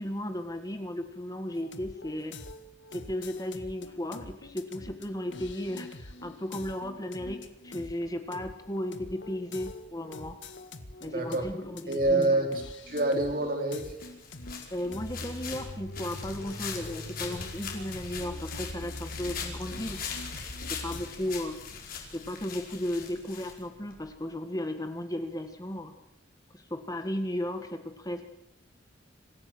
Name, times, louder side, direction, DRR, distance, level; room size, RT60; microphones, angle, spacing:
voice 1, 0.0-2.4 2.9-10.4 11.0-12.4 14.7-20.0 20.7-21.6 22.1-25.9 26.5-28.2, left 1 dB, 20° left, 7 dB, 1.6 m, -35 dB
sound 1, 1.6-21.1, left 2 dB, 75° left, 1.9 m, -43 dB
voice 2, 11.1-11.5 11.9-12.5 12.9-13.9, right 2 dB, 50° right, 3 dB, 4.3 m, -26 dB
sound 2, 14.0-24.0, left 5 dB, 50° left, 4.9 m, -41 dB
26.0 x 15.5 x 7.8 m, 0.83 s
head